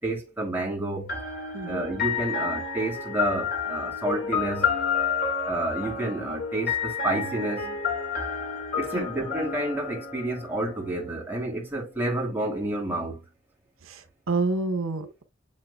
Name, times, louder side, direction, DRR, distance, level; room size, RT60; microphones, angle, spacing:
voice 1, 0.0-1.1 1.7-4.8 5.4-7.8 8.8-13.2, right 1 dB, 10° right, 2.8 m, -30 dB
sound 1, 1.1-10.9, left 6 dB, 45° left, 2.8 m, -30 dB
voice 2, 1.5-1.8 8.9-9.1 13.8-15.2, right 3 dB, 75° right, 0.9 m, -29 dB
6.9 x 6.5 x 2.3 m
head